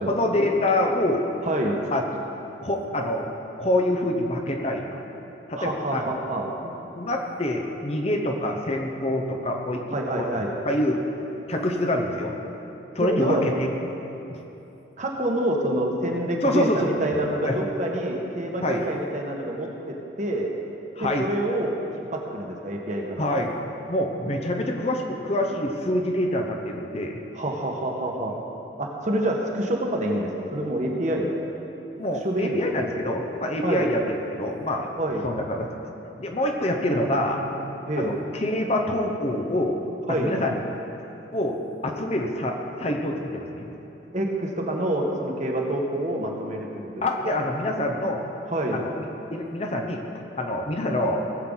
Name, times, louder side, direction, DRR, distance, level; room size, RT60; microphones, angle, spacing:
voice 1, 0.1-1.2 1.9-2.0 2.6-3.3 3.6-4.8 5.5-6.1 6.6-9.9 10.1-11.0 11.5-12.3 12.9-13.7 14.3-14.4 16.4-16.9 17.4-17.6 18.6-18.9 21.0-21.3 23.2-23.5 23.9-27.2 32.0-34.9 35.2-35.8 36.2-37.4 38.0-39.8 40.1-40.6 41.3-43.7 47.0-48.3 48.7-48.9 49.3-50.0 50.4-51.3, left 1 dB, 35° left, 2 dB, 0.9 m, -26 dB
voice 2, 1.4-1.8 5.6-6.5 9.9-10.5 13.0-13.4 15.0-20.5 21.0-21.7 22.1-23.3 27.3-28.3 28.8-31.3 32.2-32.6 33.6-33.9 35.0-35.2 36.9-38.1 40.1-40.3 44.1-47.1 48.5-48.8, right 1 dB, 40° right, 0 dB, 1.3 m, -27 dB
18.5 x 7.8 x 4.0 m, 3.0 s
head